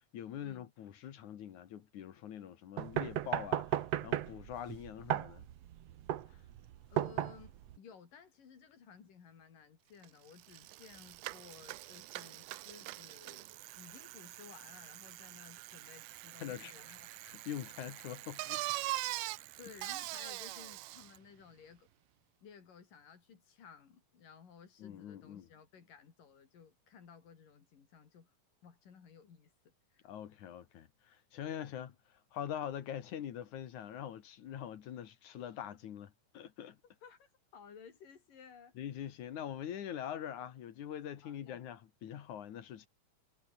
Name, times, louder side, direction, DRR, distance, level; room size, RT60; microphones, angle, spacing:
voice 1, 0.1-5.4 16.4-16.7 17.2-18.6 24.8-25.5 30.0-32.0 32.3-36.8 38.8-42.9, left 10 dB, 70° left, 2.9 m, -44 dB
sound 1, 2.8-7.8, right 12 dB, 60° right, 2.0 m, -35 dB
voice 2, 6.9-13.5 13.7-17.1 19.6-21.9 22.4-28.4 28.6-30.1 37.0-39.1 41.2-41.6, left 6 dB, 85° left, 5.1 m, -57 dB
Bicycle, 10.0-10.1 10.4-21.2, right 19 dB, 85° right, 2.2 m, -43 dB
omnidirectional pair, 3.7 m